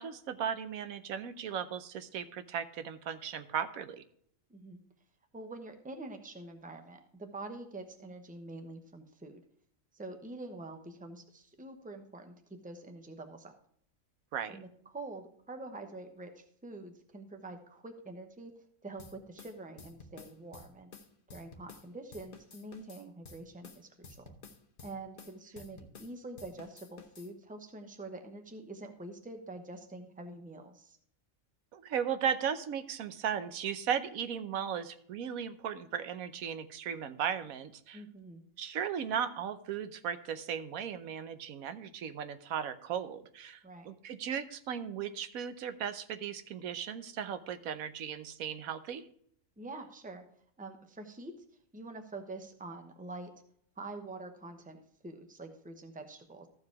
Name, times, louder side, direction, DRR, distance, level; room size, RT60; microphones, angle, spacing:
voice 1, 0.0-4.0 14.3-14.6 31.7-38.0 38.6-49.0, right 8 dB, 80° right, 11 dB, 1.2 m, -36 dB
voice 2, 4.5-4.8 5.3-9.4 9.9-13.5 14.5-18.5 18.8-20.9 21.3-24.3 24.8-31.0 37.9-38.4 43.6-43.9 49.6-50.2 50.6-51.4 51.7-53.3 53.8-56.5, right 2 dB, 5° right, 6 dB, 0.8 m, -46 dB
sound 1, 19.0-21.9 22.1-26.1 26.4-27.3, left 4 dB, 40° left, 1.1 m, -52 dB
14.0 x 4.8 x 4.7 m, 0.65 s
omnidirectional pair, 1.5 m